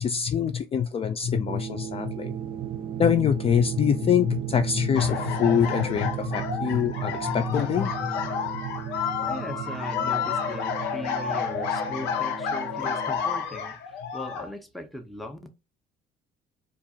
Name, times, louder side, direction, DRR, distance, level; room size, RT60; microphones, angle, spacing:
voice 1, 0.0-2.3 3.0-8.1, left 8 dB, 35° left, 0.4 m, -24 dB
sound 1, 1.2-13.5, right 15 dB, 85° right, 0.5 m, -37 dB
sound 2, 1.5-13.4, right 7 dB, 30° right, 0.6 m, -39 dB
sound 3, 4.9-14.5, left 7 dB, 85° left, 0.7 m, -30 dB
voice 2, 9.2-15.5, left 1 dB, ahead, 0.7 m, -39 dB
4.4 x 2.4 x 2.7 m
cardioid pair, 110°, 17 cm